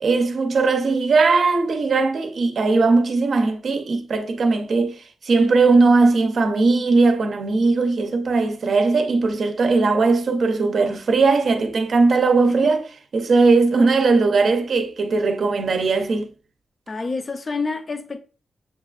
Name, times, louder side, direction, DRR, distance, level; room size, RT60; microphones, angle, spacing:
voice 1, 0.0-12.8 13.1-16.3, right 3 dB, 65° right, 0.6 m, -19 dB
voice 2, 16.9-18.2, left 4 dB, 40° left, 0.6 m, -27 dB
7.2 x 2.4 x 2.3 m
wide cardioid pair, 110°, 0 cm